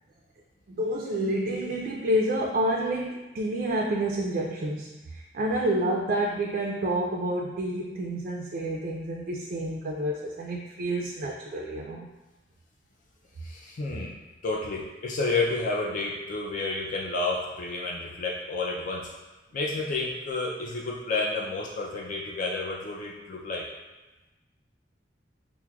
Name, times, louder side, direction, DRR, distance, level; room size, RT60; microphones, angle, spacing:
voice 1, 0.7-12.1, right 1 dB, 50° right, -1 dB, 0.3 m, -29 dB
voice 2, 13.4-14.1 14.4-19.1 19.5-23.7, left 3 dB, 45° left, -2 dB, 0.3 m, -30 dB
5.8 x 2.0 x 2.3 m, 1.1 s
head